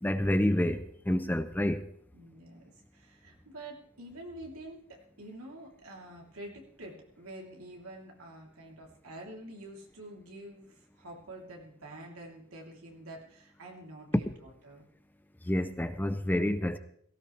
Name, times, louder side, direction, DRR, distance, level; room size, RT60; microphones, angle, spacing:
voice 1, 0.0-1.8 14.1-14.2 15.5-16.8, left 1 dB, 10° left, 0.5 m, -28 dB
voice 2, 2.1-14.3 14.6-14.8, right 1 dB, 90° right, 3.2 m, -47 dB
17.0 x 16.5 x 3.3 m
head